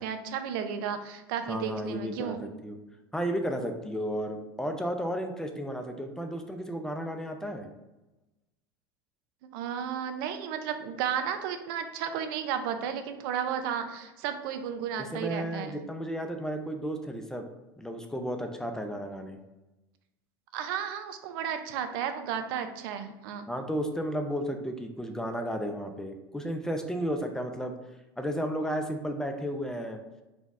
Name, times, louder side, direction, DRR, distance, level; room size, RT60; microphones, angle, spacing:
voice 1, 0.0-2.4 9.5-15.8 20.5-23.4, right 8 dB, 65° right, 8 dB, 0.5 m, -33 dB
voice 2, 1.5-2.4 2.6-2.8 3.1-7.7 15.1-17.4 17.8-19.4 23.5-27.7 28.2-30.0, equal, 5° left, 5 dB, 0.5 m, -33 dB
4.2 x 2.3 x 4.1 m, 1.0 s
hypercardioid pair, 95°, 12 cm